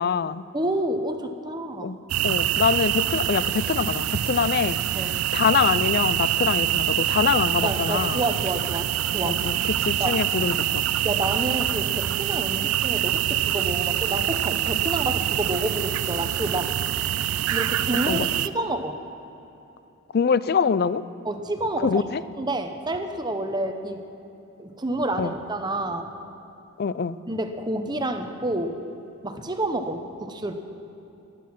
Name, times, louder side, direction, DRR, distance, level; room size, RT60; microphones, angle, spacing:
voice 1, 0.0-0.4 1.8-2.0 2.2-4.8 5.3-8.2 9.2-10.8 18.1-18.3 20.1-21.0 21.8-22.2 25.2-25.3 26.8-27.2, left 6 dB, 45° left, 16 dB, 0.4 m, -24 dB
voice 2, 0.5-2.0 4.9-5.2 7.6-8.9 9.1-9.4 10.0-10.2 11.0-16.7 17.5-19.0 21.2-22.0 22.4-24.0 24.6-26.1 27.3-28.8 29.2-30.5, right 1 dB, 20° right, 6 dB, 0.9 m, -29 dB
sound 1, 2.1-18.5, right 12 dB, 90° right, 0.4 m, -25 dB
16.0 x 11.5 x 6.1 m, 3.0 s
head